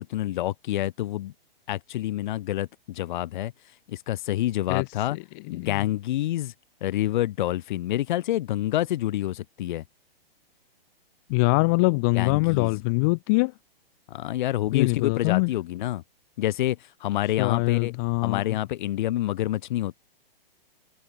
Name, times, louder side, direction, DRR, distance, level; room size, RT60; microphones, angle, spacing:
voice 1, 0.0-1.3 1.7-3.5 3.9-5.2 5.5-6.5 6.8-9.8 12.1-12.8 14.1-16.0 16.4-17.9 18.2-19.9, left 14 dB, 50° left, 3.6 m, -27 dB
voice 2, 5.1-5.8 11.3-13.5 14.7-15.5 17.4-18.6, left 29 dB, 20° left, 0.4 m, -24 dB
hypercardioid pair, 145°, 30 cm